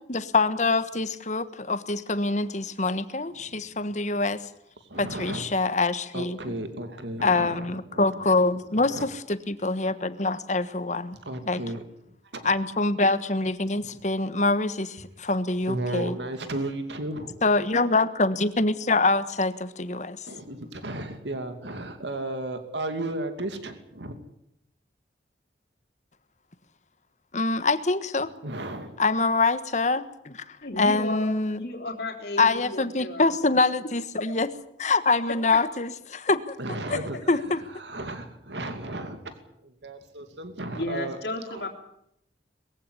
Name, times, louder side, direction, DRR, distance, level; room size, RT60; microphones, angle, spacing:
voice 1, 0.0-4.4 5.0-6.4 7.2-11.2 11.4-11.6 12.4-16.2 17.4-20.2 27.3-28.3 29.0-31.7 32.4-34.5 34.8-36.5 36.9-37.0 37.3-37.6, left 3 dB, 45° left, 12 dB, 1.4 m, -25 dB
voice 2, 4.9-5.5 6.1-8.1 8.9-9.1 11.2-11.8 12.3-12.5 13.8-13.9 15.7-17.5 20.3-24.1 28.4-29.0 36.6-37.2 37.7-39.4 39.6-41.2 41.5-41.7, right 1 dB, 90° right, 8 dB, 2.6 m, -34 dB
voice 3, 30.6-33.3 36.9-37.0 40.8-41.7, left 2 dB, 70° left, 1 dB, 3.6 m, -33 dB
21.5 x 15.5 x 9.8 m, 0.76 s
head